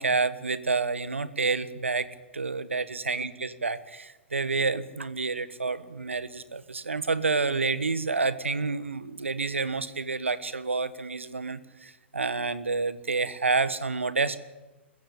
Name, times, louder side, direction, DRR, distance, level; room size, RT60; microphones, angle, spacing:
voice 1, 0.0-2.1 2.3-14.4, right 4 dB, 85° right, 15 dB, 1.3 m, -29 dB
26.0 x 15.0 x 8.5 m, 1.2 s
figure-of-eight pair, 105°, 7 cm